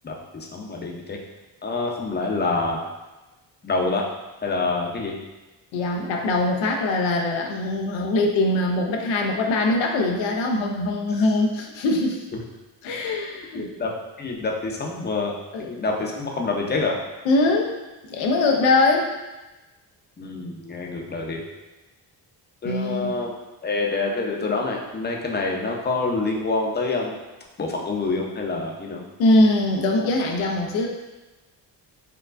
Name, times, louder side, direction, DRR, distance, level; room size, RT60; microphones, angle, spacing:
voice 1, 0.0-1.2 1.6-2.8 3.6-4.0 4.4-5.1 11.1-11.2 13.5-13.9 14.2-15.3 15.6-16.9 20.2-21.4 22.6-23.3 23.6-27.2 27.6-29.0, left 3 dB, 25° left, 0 dB, 0.6 m, -26 dB
voice 2, 5.7-12.2 12.8-13.7 15.5-15.7 17.2-17.8 18.1-19.1 22.6-23.2 29.2-30.9, left 2 dB, 90° left, 1 dB, 0.7 m, -22 dB
4.5 x 2.2 x 2.5 m, 1.1 s
cardioid pair, 80°, 44 cm